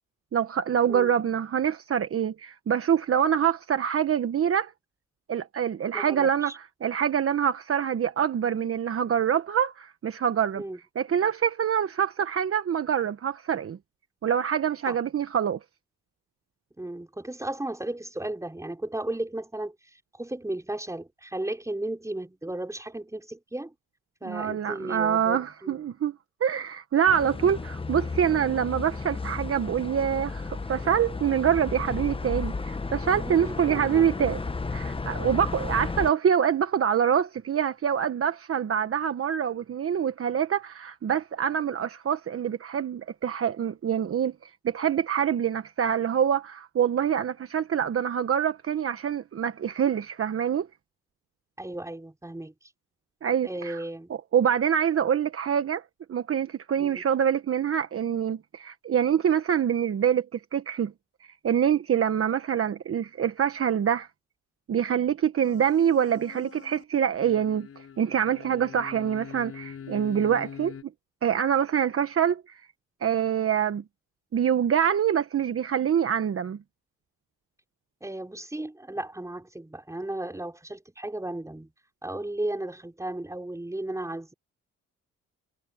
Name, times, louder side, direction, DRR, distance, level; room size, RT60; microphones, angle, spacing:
voice 1, 0.3-4.7 5.3-10.6 10.9-13.8 14.2-15.6 24.2-26.1 26.4-34.4 34.7-50.7 53.2-53.8 54.3-55.8 56.1-60.9 61.4-64.1 64.7-70.8 71.2-72.6 73.0-73.8 74.3-76.6, right 8 dB, 50° right, 1.3 m, -25 dB
voice 2, 5.9-6.6 10.5-10.8 14.9-15.0 16.8-23.7 24.2-25.8 33.2-34.0 51.6-52.5 53.4-54.1 56.8-57.0 78.0-81.7 82.0-84.3, right 1 dB, 10° right, 4.9 m, -35 dB
sound 1, 27.1-36.1, left 3 dB, 20° left, 1.0 m, -33 dB
sound 2, 65.4-66.8 67.1-70.8, left 7 dB, 50° left, 5.7 m, -43 dB
cardioid pair, 90°, 30 cm